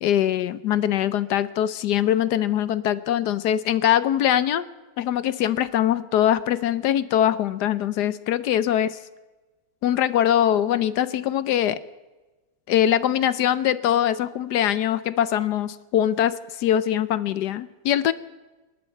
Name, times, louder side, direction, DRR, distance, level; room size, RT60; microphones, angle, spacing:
voice 1, 0.0-4.7 5.0-9.0 9.8-11.8 12.7-18.1, left 11 dB, 70° left, 15 dB, 1.2 m, -22 dB
27.0 x 12.0 x 4.5 m, 1.2 s
omnidirectional pair, 1.9 m